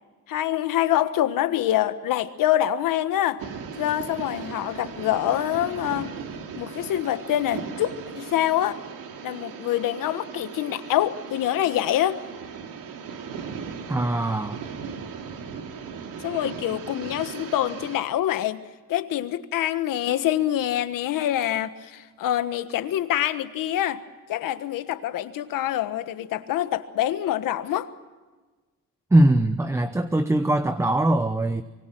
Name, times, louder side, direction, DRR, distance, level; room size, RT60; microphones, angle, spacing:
voice 1, 0.3-3.4 3.8-6.1 6.6-8.8 9.2-12.2 16.2-18.6 18.9-24.0 24.3-27.9, left 12 dB, 90° left, 1.5 m, -25 dB
sound 1, 3.4-18.0, right 6 dB, 80° right, 2.9 m, -37 dB
voice 2, 13.9-14.6 29.1-31.6, right 1 dB, 10° right, 0.8 m, -21 dB
24.5 x 24.0 x 6.2 m
cardioid pair, 150°, 32 cm